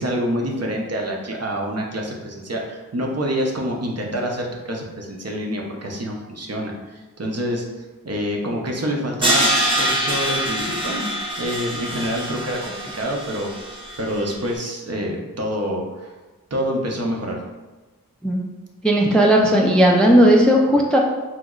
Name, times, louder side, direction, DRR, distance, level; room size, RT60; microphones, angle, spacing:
voice 1, 0.0-11.1 11.4-16.1 16.5-17.4, equal, 45° right, 0 dB, 0.7 m, -27 dB
Crash cymbal, 9.2-14.3, right 1 dB, 15° right, 0.8 m, -24 dB
voice 2, 18.8-21.0, equal, 5° left, 0 dB, 0.4 m, -15 dB
3.0 x 2.1 x 3.6 m, 1.2 s
cardioid pair, 45°, 35 cm